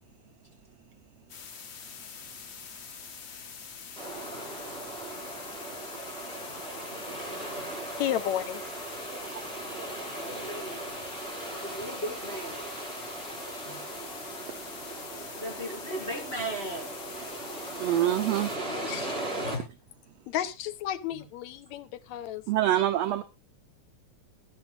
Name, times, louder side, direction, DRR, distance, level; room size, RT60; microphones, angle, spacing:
sound 1, 1.3-18.6, left 6 dB, 50° left, 1.6 m, -45 dB
sound 2, 4.0-19.6, right 2 dB, 15° right, 5.4 m, -38 dB
voice 1, 8.0-8.6 18.6-19.2 20.3-22.4, left 11 dB, 75° left, 10 dB, 2.2 m, -33 dB
voice 2, 9.3-9.6 17.8-18.5 22.5-23.2, right 12 dB, 70° right, 7 dB, 1.7 m, -26 dB
voice 3, 10.1-10.8 11.5-12.6 13.6-13.8 15.3-16.9 19.4-19.6 21.1-21.2, right 1 dB, 20° left, -1 dB, 6.6 m, -37 dB
21.0 x 10.5 x 2.5 m, 0.27 s
omnidirectional pair, 3.4 m